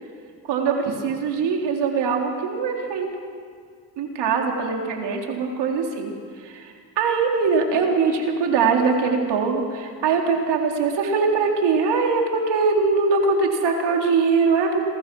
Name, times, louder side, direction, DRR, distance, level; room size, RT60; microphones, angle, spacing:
voice 1, 0.5-3.1 4.0-6.1 6.4-14.8, right 5 dB, 80° right, 1 dB, 3.8 m, -22 dB
27.0 x 23.5 x 6.3 m, 2.1 s
supercardioid pair, 60°, 40 cm